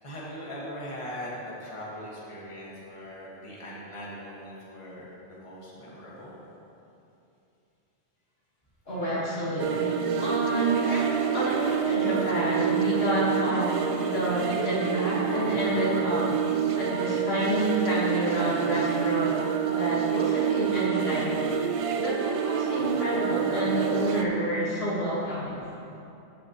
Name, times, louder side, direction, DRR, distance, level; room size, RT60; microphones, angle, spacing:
voice 1, 0.0-6.3, equal, 30° left, -7 dB, 1.7 m, -40 dB
voice 2, 8.9-19.4 19.7-21.5 22.0-25.6, right 1 dB, 70° left, -7 dB, 1.9 m, -29 dB
sound 1, 9.6-24.2, right 8 dB, 60° right, 0.3 m, -27 dB
14.5 x 6.1 x 3.0 m, 2.8 s
omnidirectional pair, 1.1 m